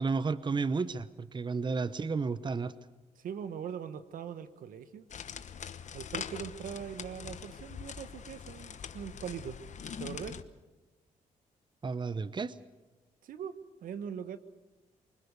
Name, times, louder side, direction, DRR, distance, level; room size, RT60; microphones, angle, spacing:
voice 1, 0.0-2.7 11.8-12.6, right 4 dB, 35° right, 15 dB, 0.9 m, -32 dB
voice 2, 3.2-5.0 5.9-9.6 10.0-10.4 13.2-14.4, right 8 dB, 80° right, 12 dB, 1.3 m, -41 dB
sound 1, 5.1-10.4, left 7 dB, 60° left, 1.1 m, -43 dB
25.0 x 21.5 x 6.8 m, 1.1 s
cardioid pair, 70°, 14 cm